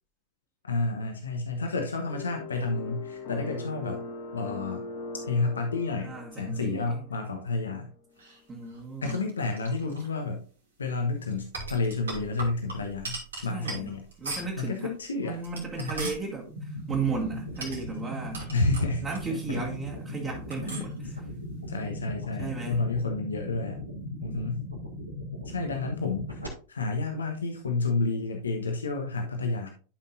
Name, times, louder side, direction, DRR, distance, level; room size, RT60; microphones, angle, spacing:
voice 1, 0.6-4.0 4.3-4.8 5.3-7.9 9.0-10.4 10.8-14.0 14.6-15.4 15.8-16.1 18.5-19.6 20.7-20.8 21.7-23.8 24.2-24.6 25.4-29.7, left 3 dB, 70° left, 4 dB, 1.0 m, -30 dB
sound 1, 2.1-7.3, left 3 dB, 45° left, 1.7 m, -40 dB
voice 2, 6.0-7.1 8.5-9.2 13.5-13.9 14.2-14.9 15.2-18.5 19.0-21.2 22.4-22.8, right 5 dB, 25° right, -3 dB, 1.8 m, -35 dB
sound 2, 8.2-10.1 11.3-14.7 15.3-16.2 17.5-19.6 19.9-20.0 20.5-21.0, right 2 dB, 70° right, 2.5 m, -40 dB
sound 3, 16.5-26.5, left 1 dB, 90° right, 2.1 m, -38 dB
11.5 x 5.5 x 2.6 m, 0.37 s
figure-of-eight pair, 90°, 0 cm